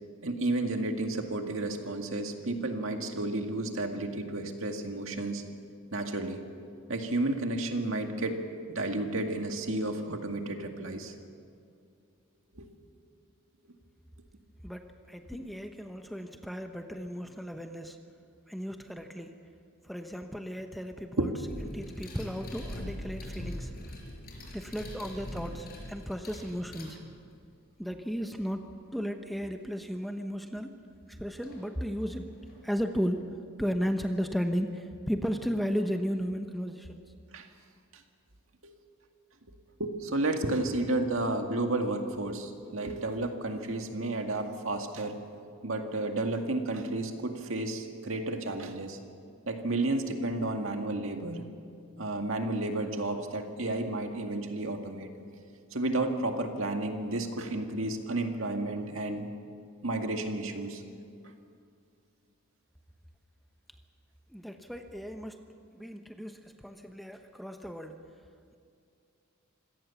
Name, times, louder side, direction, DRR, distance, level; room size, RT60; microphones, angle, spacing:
voice 1, 0.2-5.4 5.9-6.4 6.9-8.4 8.7-11.1 12.6-12.7 21.2-21.3 24.4-24.5 37.3-37.5 37.9-38.0 38.6-38.7 39.8-45.2 45.6-49.0 49.5-51.5 52.0-55.1 55.7-59.3 59.8-60.8, right 2 dB, 65° right, 4 dB, 2.0 m, -32 dB
voice 2, 14.6-18.0 18.5-19.3 19.8-21.3 21.7-23.7 24.5-27.0 27.8-28.6 28.9-30.7 31.2-32.3 32.6-33.2 33.6-37.0 64.3-65.4 65.7-68.0, equal, ahead, 5 dB, 0.9 m, -34 dB
sound 1, 21.5-27.4 29.9-30.0 31.4-31.6 32.0-33.0, equal, 45° left, 5.2 m, -42 dB
26.0 x 17.5 x 7.1 m, 2.4 s
head